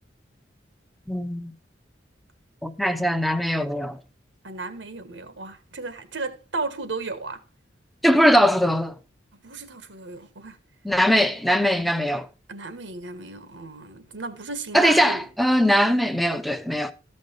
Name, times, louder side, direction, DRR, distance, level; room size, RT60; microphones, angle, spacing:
voice 1, 1.1-1.5 2.6-4.0 8.0-8.9 10.8-12.3 14.7-16.9, equal, ahead, 0.7 m, -21 dB
voice 2, 4.4-7.4 9.3-10.6 12.5-15.3, right 3 dB, 85° right, 1.6 m, -34 dB
14.0 x 5.3 x 5.2 m
head